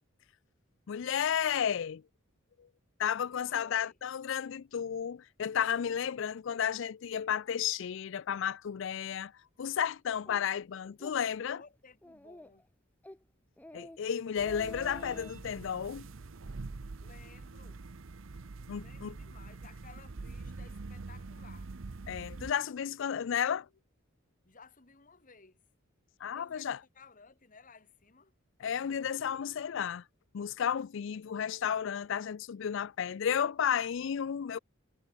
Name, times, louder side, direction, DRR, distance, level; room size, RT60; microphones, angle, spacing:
voice 1, 0.9-2.0 3.0-9.3 9.6-11.6 13.7-16.1 18.7-19.2 22.1-23.7 26.2-26.8 28.6-30.0 30.3-34.6, left 8 dB, 65° left, 0.4 m, -33 dB
voice 2, 3.4-4.0 11.5-12.7 17.0-17.8 18.8-21.7 24.4-25.6 26.3-28.3, left 4 dB, 40° left, 1.8 m, -57 dB
Speech, 10.3-10.4 10.9-11.2 11.5-11.6 12.0-12.6 13.0-13.2 13.6-14.0 14.3-15.3, left 1 dB, 10° left, 0.6 m, -48 dB
sound 1, 14.4-22.5, right 3 dB, 75° right, 0.8 m, -45 dB
head